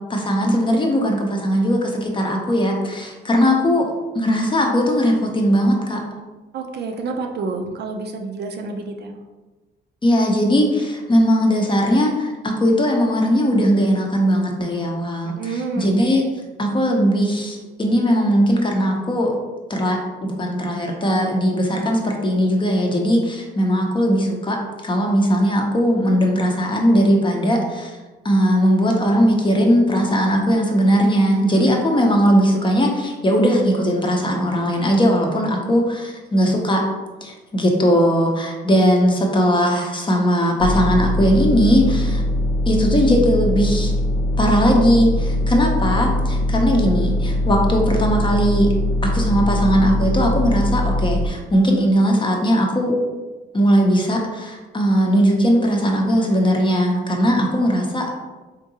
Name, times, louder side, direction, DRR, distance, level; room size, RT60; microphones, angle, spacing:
voice 1, 0.0-6.0 10.0-16.3 16.6-19.3 19.7-27.9 28.2-36.8 37.2-42.2 42.7-43.9 44.4-48.7 49.0-53.0 53.5-58.1, equal, 25° left, 1 dB, 0.6 m, -19 dB
voice 2, 6.5-9.1 15.4-16.0, right 3 dB, 55° right, 3 dB, 0.5 m, -28 dB
sound 1, 40.6-51.3, left 1 dB, 70° left, 0.8 m, -21 dB
3.6 x 2.7 x 2.7 m, 1.2 s
cardioid pair, 90°, 20 cm